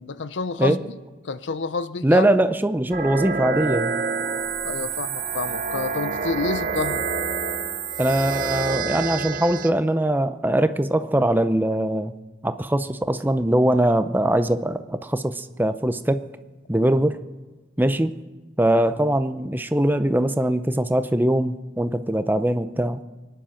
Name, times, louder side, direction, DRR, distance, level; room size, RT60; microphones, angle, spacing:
voice 1, 0.0-0.9 1.2-2.2 4.6-7.0, left 4 dB, 85° left, 14 dB, 0.6 m, -29 dB
voice 2, 2.0-3.9 8.0-12.1 12.4-16.2 16.7-17.2 17.8-18.1 18.6-23.0, right 1 dB, 10° right, 10 dB, 0.5 m, -21 dB
sound 1, 2.9-9.7, right 5 dB, 45° right, 0.8 m, -27 dB
24.0 x 10.0 x 5.8 m, 1.2 s
head